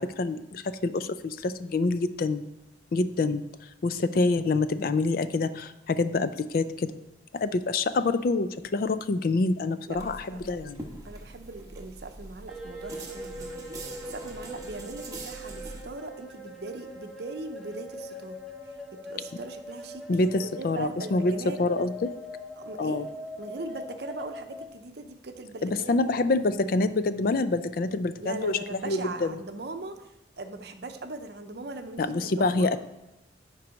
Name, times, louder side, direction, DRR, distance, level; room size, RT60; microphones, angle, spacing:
voice 1, 0.0-2.5 2.9-3.4 3.8-6.9 7.3-10.8 20.1-22.1 22.8-23.1 25.6-29.4 32.0-32.8, left 3 dB, 50° left, 12 dB, 0.4 m, -26 dB
sound 1, 9.9-15.8, right 2 dB, 20° right, 1.0 m, -43 dB
voice 2, 9.9-10.4 11.0-13.5 14.0-18.4 18.7-18.8 19.0-21.6 22.6-23.0 23.4-26.0 28.2-32.7, right 3 dB, 60° right, 8 dB, 0.7 m, -40 dB
sound 2, 12.5-24.7, left 1 dB, ahead, 0.8 m, -42 dB
9.7 x 4.6 x 5.2 m, 0.93 s
head